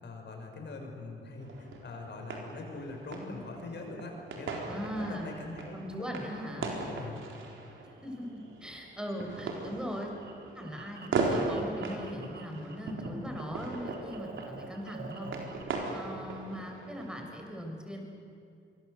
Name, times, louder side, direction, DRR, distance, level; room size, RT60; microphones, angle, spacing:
voice 1, 0.0-4.6 4.9-6.1 6.5-7.2 15.2-15.7, left 3 dB, 65° left, 2 dB, 5.9 m, -43 dB
sound 1, 1.4-17.4, right 3 dB, 85° right, 4.1 m, -38 dB
voice 2, 4.7-5.3 5.7-6.7 8.0-8.2 8.6-10.1 10.5-15.3 15.9-18.0, equal, 5° right, 2 dB, 6.2 m, -39 dB
sound 2, 10.2-13.1 13.3-15.6, right 4 dB, 60° right, 3.3 m, -48 dB
26.5 x 22.5 x 8.1 m, 2.4 s
cardioid pair, 75°, 20 cm